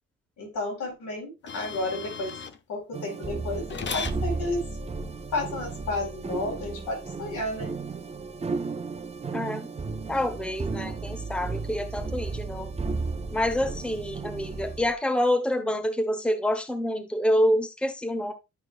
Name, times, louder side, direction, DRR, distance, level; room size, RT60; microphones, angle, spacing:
voice 1, 0.4-2.3 2.7-4.6 5.3-7.7, left 2 dB, 75° left, 4.6 m, -32 dB
sound 1, 1.5-2.6 3.7-4.2 6.6-6.7, left 6 dB, 40° left, 0.8 m, -35 dB
sound 2, 2.9-14.9, right 4 dB, 20° right, 0.7 m, -34 dB
voice 2, 9.3-9.7 10.1-12.7 13.3-18.3, left 1 dB, 5° left, 1.1 m, -27 dB
11.5 x 4.2 x 2.4 m
cardioid pair, 90°, 30 cm